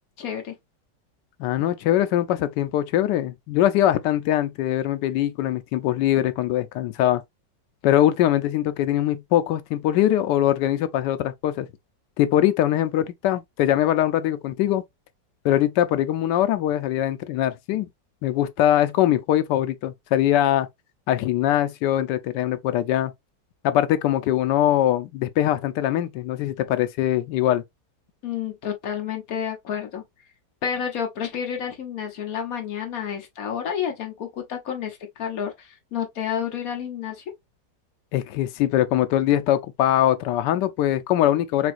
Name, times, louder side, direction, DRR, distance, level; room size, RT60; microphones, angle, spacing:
voice 1, 0.2-0.5 28.2-30.0 30.6-37.2, left 8 dB, 55° left, 1.4 m, -30 dB
voice 2, 1.4-7.2 7.8-11.7 12.2-14.8 15.4-17.9 18.2-20.7 21.1-23.1 23.6-27.6 38.1-41.7, left 12 dB, 75° left, 1.2 m, -22 dB
6.1 x 2.3 x 2.5 m
omnidirectional pair, 2.0 m